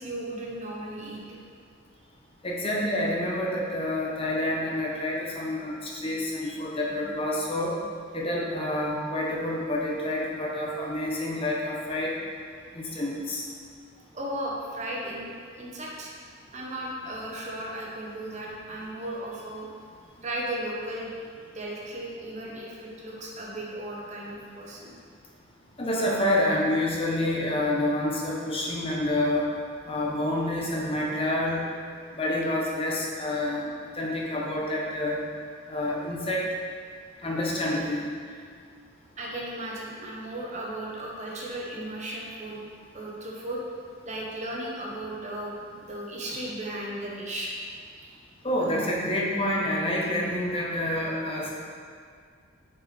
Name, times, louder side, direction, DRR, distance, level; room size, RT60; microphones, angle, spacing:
voice 1, 0.0-1.4 6.4-6.6 12.8-13.0 14.1-16.1 16.5-19.7 20.2-21.1 21.5-24.9 39.2-42.6 42.9-43.6 44.0-45.6 45.8-47.5 48.0-48.1, right 1 dB, 35° right, -3 dB, 1.0 m, -35 dB
voice 2, 2.4-7.8 8.1-12.1 12.7-13.5 25.8-29.5 29.9-31.6 32.1-33.6 33.9-35.2 35.7-36.5 37.2-38.1 48.4-51.5, left 1 dB, 30° left, -3 dB, 0.9 m, -28 dB
6.2 x 4.7 x 4.3 m, 2.1 s
head